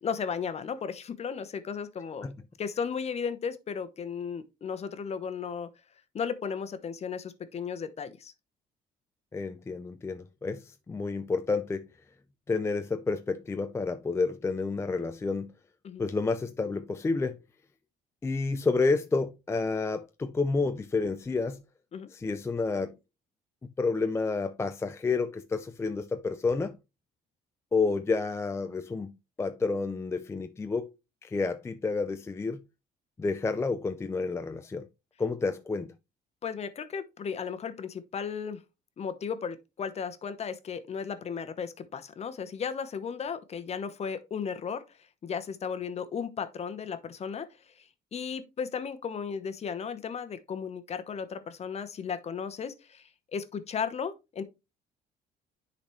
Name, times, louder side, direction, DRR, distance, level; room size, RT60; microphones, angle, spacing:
voice 1, 0.0-2.3 2.6-5.7 6.1-8.3 15.8-16.1 21.9-22.1 36.4-38.6 39.0-44.8 45.2-47.5 47.8-54.4, left 6 dB, 40° left, 0.9 m, -35 dB
voice 2, 9.3-11.9 12.5-15.5 16.0-17.4 18.2-21.6 22.1-23.0 23.6-26.8 27.7-29.1 29.4-30.9 31.2-32.6 33.2-34.9 35.2-35.9, left 4 dB, 15° left, 0.4 m, -30 dB
10.0 x 4.1 x 3.1 m
cardioid pair, 110°, 17 cm